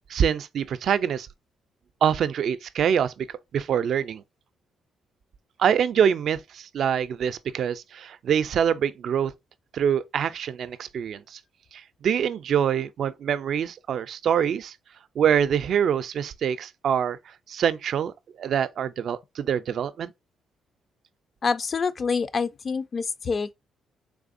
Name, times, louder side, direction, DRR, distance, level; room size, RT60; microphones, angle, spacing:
voice 1, 0.1-1.3 2.0-3.3 3.5-4.2 5.6-9.3 9.7-11.4 11.7-14.7 15.2-17.2 17.5-20.1, right 8 dB, 65° right, 0.4 m, -25 dB
voice 2, 21.4-23.5, left 5 dB, 40° left, 0.4 m, -26 dB
3.5 x 3.4 x 2.5 m
cardioid pair, 90°, 0 cm